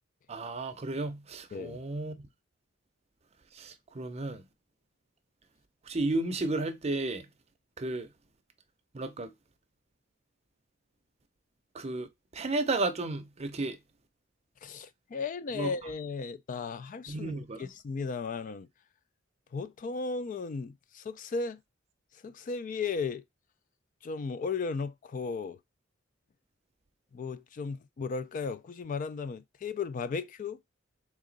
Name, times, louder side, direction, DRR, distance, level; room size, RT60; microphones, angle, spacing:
voice 1, 0.3-2.2 3.5-4.4 5.9-7.3 7.8-8.1 8.9-9.3 11.7-12.1 12.3-13.8 15.5-15.7 17.1-17.7, right 2 dB, 30° right, 0.6 m, -33 dB
voice 2, 14.6-18.7 19.5-21.6 22.2-23.2 24.0-25.6 27.1-30.6, left 4 dB, 40° left, 0.3 m, -35 dB
3.6 x 2.9 x 3.9 m
head